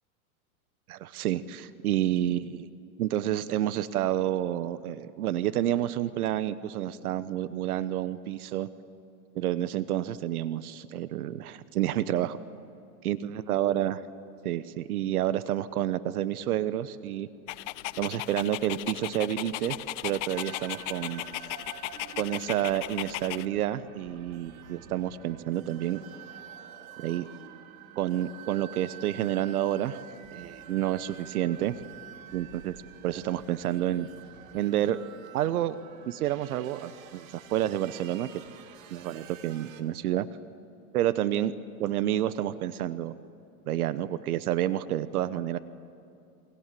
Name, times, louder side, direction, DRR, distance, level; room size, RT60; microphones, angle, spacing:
voice 1, 0.9-2.7 3.0-8.7 9.3-12.4 13.0-14.0 14.4-17.3 18.0-19.8 20.0-21.2 22.2-26.0 27.0-27.3 28.0-30.0 30.3-31.8 32.3-32.7 33.0-34.1 34.5-35.0 35.3-35.8 36.1-38.4 38.9-40.3 40.9-41.5 41.8-43.2 43.7-45.6, right 12 dB, 75° right, 14 dB, 1.2 m, -29 dB
Dog, 17.5-23.5, left 18 dB, 55° left, 0.8 m, -36 dB
sound 1, 20.3-39.8, right 9 dB, 60° right, 3.0 m, -48 dB
28.5 x 23.5 x 7.7 m, 2.7 s
supercardioid pair, 140°, 44 cm